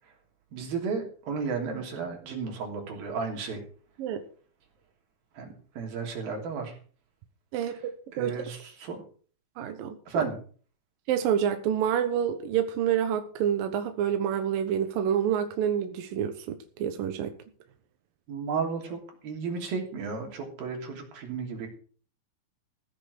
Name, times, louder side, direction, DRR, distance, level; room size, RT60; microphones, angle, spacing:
voice 1, 0.5-3.6 5.3-6.8 8.1-9.0 10.1-10.4 18.3-21.7, right 5 dB, 55° right, 4.6 m, -33 dB
voice 2, 9.6-10.0 11.1-17.3, right 9 dB, 70° right, 2.2 m, -27 dB
15.5 x 7.7 x 6.3 m
omnidirectional pair, 5.5 m